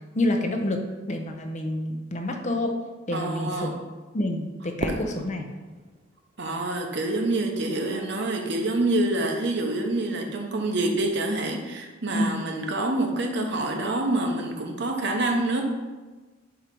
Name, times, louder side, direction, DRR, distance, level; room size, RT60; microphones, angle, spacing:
voice 1, 0.1-0.8 1.1-2.7 3.1-3.8 4.1-5.5 12.1-12.3, left 1 dB, 35° left, 4 dB, 0.7 m, -28 dB
voice 2, 3.1-3.8 4.9-5.0 6.4-15.6, right 2 dB, 60° right, 2 dB, 0.9 m, -27 dB
Fireworks, 4.8-7.1, right 1 dB, 35° right, 0.6 m, -35 dB
4.7 x 4.4 x 5.3 m, 1.3 s
head